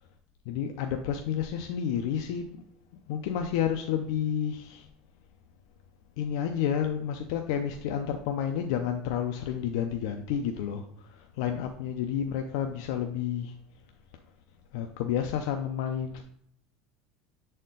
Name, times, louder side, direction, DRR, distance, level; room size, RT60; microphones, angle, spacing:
voice 1, 0.5-2.5 3.1-4.9 6.2-13.6 14.7-16.2, left 8 dB, 70° left, 6 dB, 0.5 m, -30 dB
7.3 x 4.3 x 3.8 m, 0.72 s
cardioid pair, 175°, 2 cm